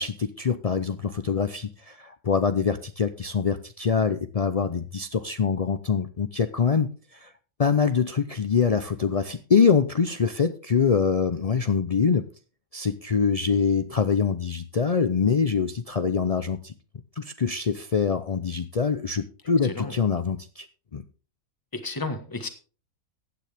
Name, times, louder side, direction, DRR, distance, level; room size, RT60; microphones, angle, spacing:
voice 1, 0.0-7.3 7.6-12.3 12.7-16.7 17.2-20.7 20.9-21.0, left 6 dB, 80° left, 10 dB, 0.3 m, -24 dB
voice 2, 19.6-19.9 21.7-22.5, left 3 dB, 15° left, 8 dB, 1.3 m, -32 dB
15.5 x 9.3 x 3.4 m, 0.37 s
omnidirectional pair, 1.5 m